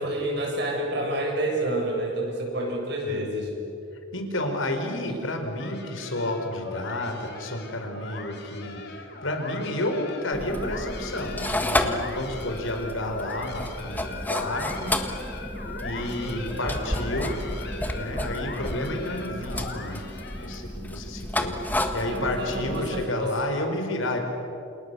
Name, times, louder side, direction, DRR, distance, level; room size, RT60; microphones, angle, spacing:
voice 1, 0.0-3.5 5.1-5.2 16.2-16.9 22.0-23.3, right 1 dB, 55° right, 0 dB, 7.2 m, -29 dB
voice 2, 3.0-3.6 4.1-14.9 15.8-17.4 17.9-20.0 20.3-24.2, left 1 dB, 75° left, 4 dB, 4.7 m, -31 dB
sound 1, 5.6-20.7, left 3 dB, 50° left, 3.3 m, -39 dB
sound 2, 10.3-23.0, left 1 dB, 10° left, 1.5 m, -31 dB
29.0 x 28.5 x 7.0 m, 2.7 s
head